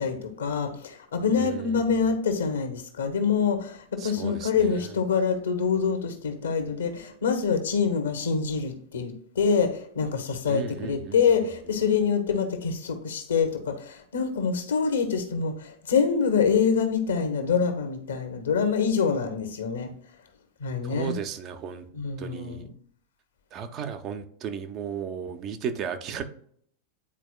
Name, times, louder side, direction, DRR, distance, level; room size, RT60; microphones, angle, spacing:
voice 1, 0.0-19.9 20.6-21.2 21.9-22.7, left 6 dB, 65° left, 7 dB, 1.1 m, -26 dB
voice 2, 1.4-2.0 4.0-4.7 10.5-11.2 20.8-21.8 22.2-22.7 23.5-26.2, right 7 dB, 35° right, 8 dB, 0.7 m, -35 dB
9.9 x 4.3 x 2.3 m, 0.62 s
figure-of-eight pair, 90°, 0 cm